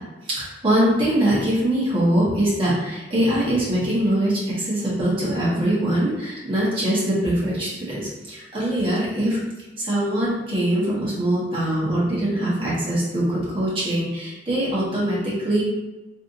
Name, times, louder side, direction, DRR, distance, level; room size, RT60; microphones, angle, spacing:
voice 1, 0.4-9.4 9.8-15.6, right 1 dB, 30° right, -8 dB, 1.2 m, -22 dB
3.4 x 2.7 x 2.6 m, 1.1 s
head